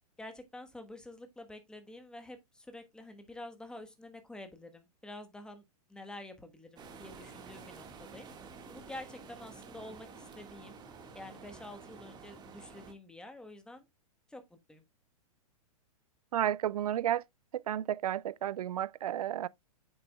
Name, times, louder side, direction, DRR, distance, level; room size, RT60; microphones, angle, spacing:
voice 1, 0.2-5.6 5.9-8.3 8.7-10.8 11.1-13.9 14.3-14.8, left 1 dB, 5° left, 1.2 m, -48 dB
sound 1, 6.8-12.9, right 5 dB, 20° right, 1.7 m, -50 dB
voice 2, 16.3-17.2 17.7-19.5, right 11 dB, 75° right, 0.4 m, -32 dB
8.7 x 7.0 x 2.3 m
hypercardioid pair, 120°, 19 cm